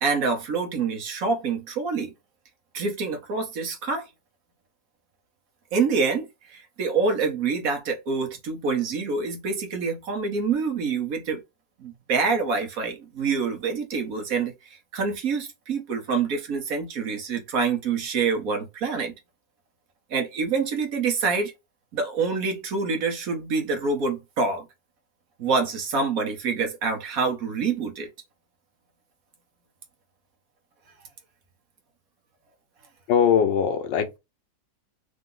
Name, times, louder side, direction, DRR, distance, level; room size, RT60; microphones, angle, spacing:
voice 1, 0.0-2.1 2.7-4.0 5.7-11.4 11.8-19.1 20.1-21.5 21.9-24.7 25.4-28.1, right 4 dB, 55° right, 1.4 m, -26 dB
voice 2, 33.1-34.2, left 8 dB, 85° left, 1.4 m, -21 dB
3.8 x 2.8 x 3.8 m
omnidirectional pair, 1.9 m